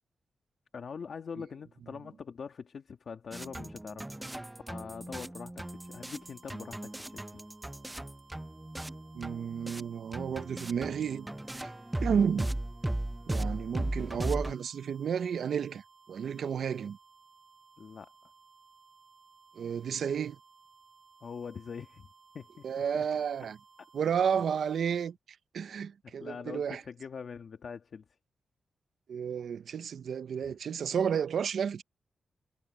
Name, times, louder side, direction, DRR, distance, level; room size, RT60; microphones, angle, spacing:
voice 1, 0.7-4.1 4.7-7.4 17.8-18.1 21.2-22.1 22.3-22.6 22.9-23.0 26.0-28.0 30.4-30.5, left 6 dB, 55° left, 1.6 m, -43 dB
sound 1, 3.3-9.8 10.1-14.5, right 1 dB, 10° right, 0.5 m, -37 dB
sound 2, 5.6-25.1, right 5 dB, 45° right, 7.1 m, -60 dB
voice 2, 9.1-11.3 11.5-11.7 12.0-12.5 13.3-17.0 19.5-20.4 22.6-23.6 23.9-25.2 25.5-26.8 29.1-31.8, right 7 dB, 75° right, 0.7 m, -32 dB
wide cardioid pair, 140°, 0 cm